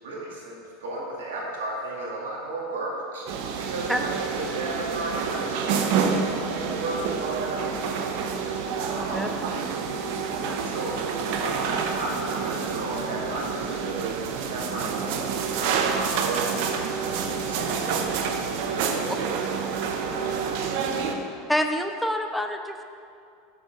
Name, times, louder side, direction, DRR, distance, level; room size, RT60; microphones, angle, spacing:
voice 1, 0.0-3.3 3.6-8.1 8.8-9.3 10.6-11.0 11.4-13.8 14.3-18.4 18.7-19.6 20.0-20.7, right 2 dB, 85° right, -3 dB, 2.0 m, -35 dB
sound 1, 3.3-21.1, right 6 dB, 65° right, 0.7 m, -28 dB
voice 2, 8.9-9.3 10.4-10.6 21.5-22.8, equal, ahead, 5 dB, 0.5 m, -27 dB
6.9 x 6.6 x 5.2 m, 2.4 s
hypercardioid pair, 105°, 0 cm